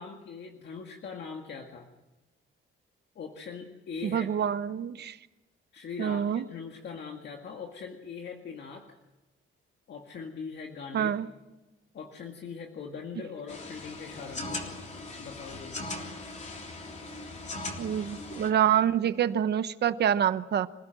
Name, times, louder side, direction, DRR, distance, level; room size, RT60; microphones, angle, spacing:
voice 1, 0.0-1.9 3.2-4.3 5.7-9.0 9.9-11.2 11.9-14.6 15.2-16.1, left 5 dB, 55° left, 2.0 m, -41 dB
voice 2, 4.0-5.1 6.0-6.4 10.9-11.3 17.8-20.7, right 9 dB, 50° right, 1.0 m, -26 dB
sound 1, 13.5-18.5, left 2 dB, 35° left, 3.4 m, -39 dB
26.5 x 16.5 x 7.8 m
cardioid pair, 160°, 21 cm